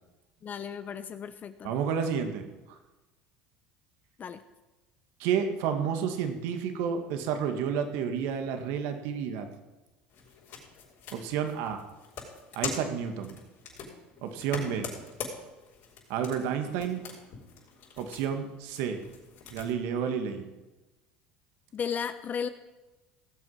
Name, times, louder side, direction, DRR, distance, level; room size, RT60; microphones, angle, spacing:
voice 1, 0.4-1.7 4.2-4.4 21.7-22.5, left 7 dB, 40° left, 11 dB, 0.9 m, -34 dB
voice 2, 1.6-2.4 5.2-9.5 11.1-11.8 12.5-13.3 14.2-14.9 16.1-17.0 18.0-19.0 19.5-20.4, right 7 dB, 70° right, 6 dB, 2.0 m, -30 dB
sound 1, 10.1-19.7, left 5 dB, 60° left, 5.3 m, -43 dB
18.0 x 8.0 x 5.7 m, 1.1 s
hypercardioid pair, 85°, 5 cm